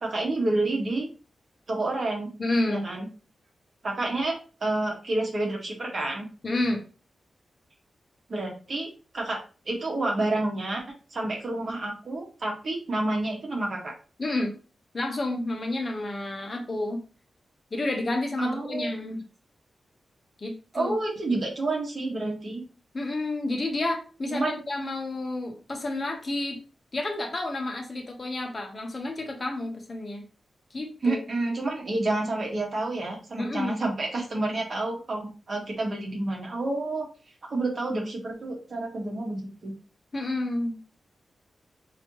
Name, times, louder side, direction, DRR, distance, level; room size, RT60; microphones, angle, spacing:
voice 1, 0.0-1.1 1.7-2.3 2.7-3.1 3.8-6.3 8.3-8.9 9.1-9.4 9.6-10.8 11.1-13.9 18.4-18.9 20.7-22.6 24.3-24.6 31.0-37.1 37.4-39.7, right 2 dB, 50° right, -1 dB, 1.7 m, -29 dB
voice 2, 2.4-2.8 6.4-6.8 14.2-14.5 14.9-17.0 17.7-19.2 20.4-20.9 21.3-21.4 22.9-26.6 26.9-30.2 30.7-31.2 33.4-33.8 40.1-40.8, left 2 dB, 35° left, 3 dB, 0.9 m, -30 dB
5.5 x 3.0 x 3.0 m, 0.35 s
wide cardioid pair, 125°, 0 cm